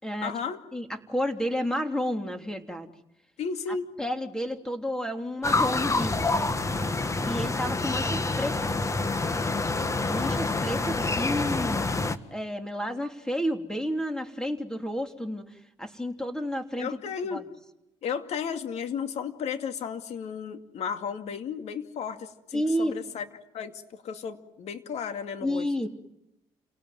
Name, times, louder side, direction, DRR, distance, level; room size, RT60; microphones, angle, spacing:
voice 1, 0.2-0.6 3.4-3.9 16.8-17.5 18.0-23.3 23.5-25.7, left 6 dB, 65° left, 7 dB, 2.5 m, -34 dB
voice 2, 0.7-2.9 4.0-6.6 7.2-8.7 10.0-11.9 12.3-15.4 15.8-16.9 17.3-17.4 22.5-22.9 25.4-25.9, equal, 5° left, 5 dB, 3.4 m, -31 dB
sound 1, 5.4-12.2, left 3 dB, 25° left, 1.7 m, -27 dB
29.0 x 18.5 x 9.5 m, 0.89 s
supercardioid pair, 75°, 12 cm